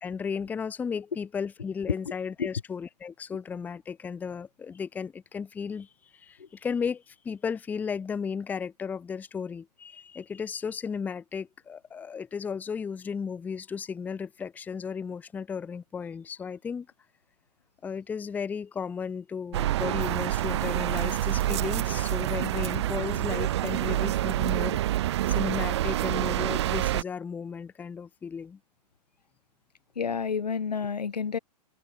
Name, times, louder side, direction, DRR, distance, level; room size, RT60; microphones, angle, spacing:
voice 1, 0.0-16.9 17.8-24.8 25.3-28.6, left 6 dB, 10° left, 0.6 m, -34 dB
sound 1, 19.5-27.0, right 14 dB, 40° right, 0.5 m, -27 dB
voice 2, 30.0-31.4, left 6 dB, 75° left, 0.8 m, -30 dB
figure-of-eight pair, 110°, 21 cm